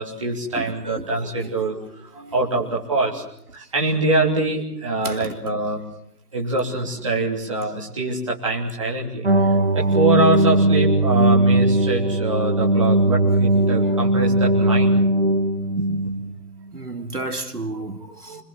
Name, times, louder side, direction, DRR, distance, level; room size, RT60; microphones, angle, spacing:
voice 1, 0.0-3.2 3.5-5.8 6.3-15.0 15.8-16.1 17.7-18.4, right 2 dB, 20° right, 3.2 m, -24 dB
voice 2, 0.6-1.1 5.0-5.4 9.3-10.1 16.7-18.4, right 2 dB, 70° right, 3.0 m, -33 dB
sound 1, 9.2-16.3, right 1 dB, 40° right, 1.3 m, -18 dB
25.5 x 23.0 x 7.5 m
figure-of-eight pair, 170°, 48 cm